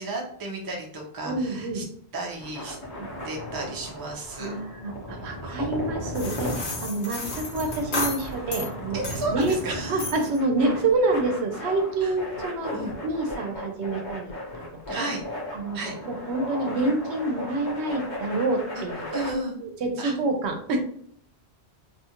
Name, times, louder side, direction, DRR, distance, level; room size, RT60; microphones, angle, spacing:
voice 1, 0.0-1.8 2.1-2.8 3.2-4.5 5.4-5.7 8.9-10.0 12.0-12.1 12.7-12.9 14.9-15.2 15.7-16.0 19.1-19.6 20.0-20.1, right 2 dB, 30° right, 0 dB, 0.4 m, -33 dB
voice 2, 1.2-1.9 3.0-3.1 4.4-9.0 9.3-9.6 9.9-14.6 15.0-15.1 15.5-15.8 16.1-19.1 19.6-20.8, right 2 dB, 85° right, 4 dB, 0.9 m, -27 dB
sound 1, 2.3-19.3, equal, 45° left, 0.9 m, -36 dB
sound 2, 6.1-8.7 9.0-9.6 10.0-10.4, left 3 dB, 70° left, 1.1 m, -33 dB
2.6 x 2.4 x 2.8 m, 0.63 s
omnidirectional pair, 1.1 m